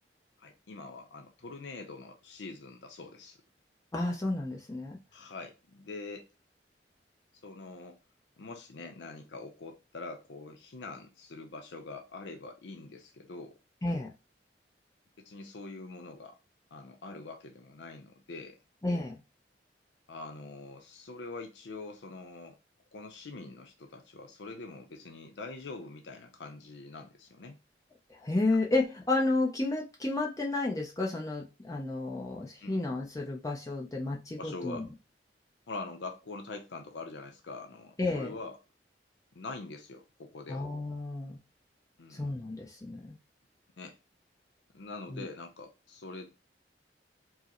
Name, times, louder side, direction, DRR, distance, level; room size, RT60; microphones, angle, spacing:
voice 1, 0.4-3.4 5.1-6.3 7.4-8.0 8.4-13.6 15.2-16.4 16.7-18.6 20.1-22.6 22.9-27.6 32.6-32.9 34.4-34.9 35.7-38.6 39.3-40.7 42.0-42.3 43.8-44.0 44.7-46.3, left 3 dB, 80° left, 0.6 m, -44 dB
voice 2, 3.9-5.0 13.8-14.1 18.8-19.1 28.1-34.9 38.0-38.3 40.5-41.4 42.1-43.2 45.1-45.2, left 2 dB, 20° left, 0.5 m, -31 dB
4.6 x 2.0 x 2.9 m
head